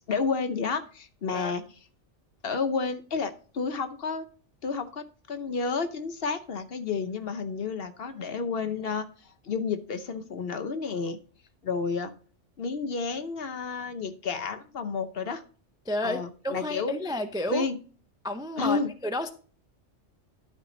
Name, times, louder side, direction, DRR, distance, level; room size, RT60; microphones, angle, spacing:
voice 1, 0.1-1.6 2.4-4.3 4.6-9.1 9.4-11.2 11.6-12.1 12.6-15.4 16.0-16.9 17.5-17.8 18.6-18.9, left 5 dB, 55° left, 1.0 m, -30 dB
voice 2, 15.9-17.6 18.2-19.3, left 1 dB, 5° right, 0.4 m, -31 dB
12.0 x 4.8 x 3.8 m
omnidirectional pair, 1.3 m